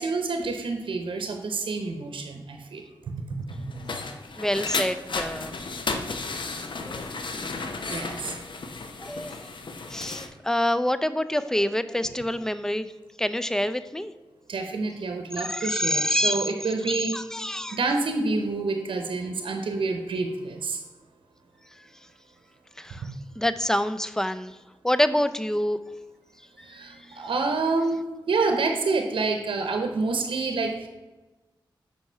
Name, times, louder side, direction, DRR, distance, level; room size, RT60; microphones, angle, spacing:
voice 1, 0.0-2.9 7.9-8.3 14.5-17.2 17.7-20.8 26.6-28.0 28.3-30.9, right 3 dB, 80° right, 5 dB, 0.8 m, -28 dB
sound 1, 3.5-10.3, left 3 dB, 70° left, 0.8 m, -33 dB
voice 2, 4.4-5.6 6.0-6.2 6.8-7.1 7.8-8.2 9.0-9.5 9.9-12.9 13.2-14.1 15.4-16.4 16.9-17.8 22.8-24.6 24.8-25.8 26.6-26.8 27.1-27.2, left 1 dB, 5° left, 13 dB, 0.5 m, -27 dB
5.9 x 4.7 x 5.6 m, 1.2 s
cardioid pair, 45°, 9 cm